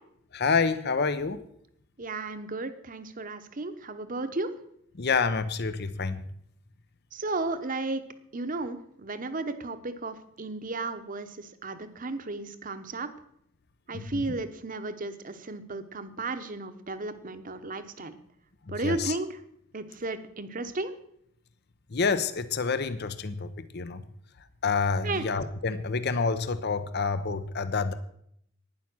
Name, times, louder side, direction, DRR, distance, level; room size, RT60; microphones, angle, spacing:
voice 1, 0.3-1.5 4.9-6.3 13.9-14.2 18.7-19.2 21.9-24.0 24.6-27.9, left 4 dB, 50° left, 0.7 m, -28 dB
voice 2, 2.0-4.5 7.1-8.0 8.3-13.1 13.9-18.1 18.7-19.3 19.7-20.9 25.0-25.3, right 2 dB, 40° right, 1.0 m, -34 dB
11.5 x 9.8 x 6.1 m
head